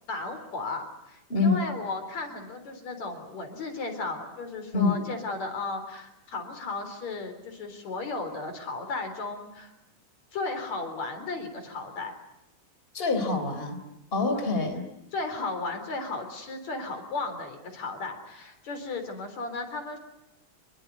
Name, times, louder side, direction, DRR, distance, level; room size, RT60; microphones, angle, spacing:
voice 1, 0.1-9.7 10.3-12.1 14.3-14.5 15.1-20.0, left 3 dB, 65° left, 7 dB, 5.0 m, -35 dB
voice 2, 12.9-13.8 14.1-14.8, left 3 dB, 15° left, 6 dB, 3.8 m, -25 dB
27.0 x 22.0 x 9.5 m, 0.86 s
omnidirectional pair, 3.5 m